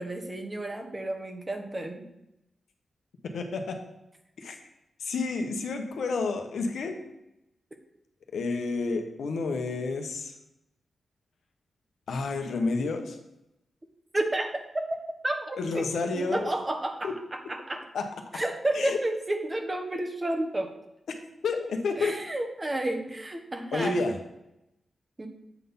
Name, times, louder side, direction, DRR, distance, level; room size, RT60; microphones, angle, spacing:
voice 1, 0.0-2.0 14.1-14.9 15.2-15.9 16.1-17.8 18.3-20.7 22.0-24.0 25.2-25.3, right 1 dB, 25° right, 4 dB, 1.3 m, -31 dB
voice 2, 3.2-3.8 4.4-4.6 5.0-7.0 8.3-10.3 12.1-13.2 15.6-16.5 17.0-17.1 17.9-18.1 18.7-19.0 21.4-22.2 23.7-24.2, left 3 dB, 80° left, 4 dB, 1.0 m, -30 dB
8.2 x 4.0 x 5.5 m, 0.87 s
cardioid pair, 55°, 0 cm